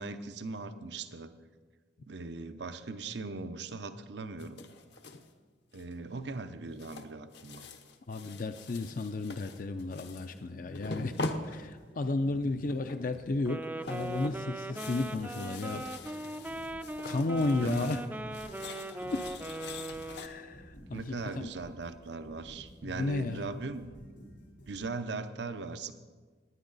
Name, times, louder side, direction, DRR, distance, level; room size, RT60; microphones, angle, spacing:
voice 1, 0.0-1.4 2.1-4.6 5.7-7.7 12.3-12.6 17.6-17.9 20.9-23.9 24.7-25.9, right 3 dB, 75° right, 10 dB, 0.7 m, -39 dB
sound 1, 4.4-5.3 5.7-6.2 6.8-10.4 10.7-12.2 12.7-13.2 13.5-18.1 18.3-20.3, left 2 dB, 70° left, 0.9 m, -43 dB
voice 2, 8.1-11.2 11.4-16.4 17.0-18.0 19.1-19.2 20.2-21.5 22.8-23.6, left 2 dB, 50° left, 8 dB, 0.5 m, -33 dB
sound 2, 10.0-24.7, equal, 90° left, 4.0 m, -54 dB
Wind instrument woodwind instrument, 13.4-20.6, right 1 dB, 10° right, 0.4 m, -40 dB
19.0 x 9.5 x 4.0 m, 1.5 s
head